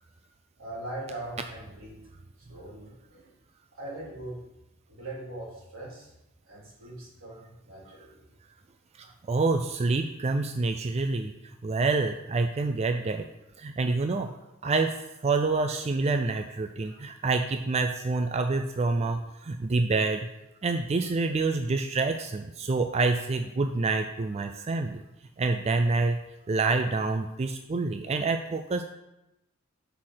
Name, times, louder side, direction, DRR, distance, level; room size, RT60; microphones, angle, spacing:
voice 1, 0.6-2.1 2.4-3.3 3.8-4.4 4.9-6.1 6.5-8.2 9.0-9.1 16.8-17.0, right 1 dB, 80° right, -6 dB, 3.5 m, -41 dB
voice 2, 9.0-11.3 11.6-13.3 13.6-14.3 14.6-20.3 20.6-25.0 25.4-26.2 26.5-28.8, right 3 dB, 30° right, 6 dB, 0.4 m, -27 dB
6.3 x 5.7 x 6.4 m, 0.92 s
head